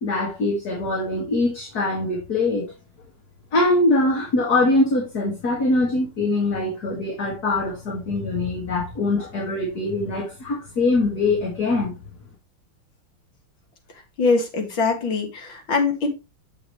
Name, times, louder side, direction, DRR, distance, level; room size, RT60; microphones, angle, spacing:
voice 1, 0.0-2.7 3.5-11.9, left 2 dB, 50° left, 2.5 m, -23 dB
voice 2, 14.2-16.1, left 4 dB, 70° left, 2.6 m, -22 dB
7.6 x 6.8 x 3.1 m
omnidirectional pair, 2.3 m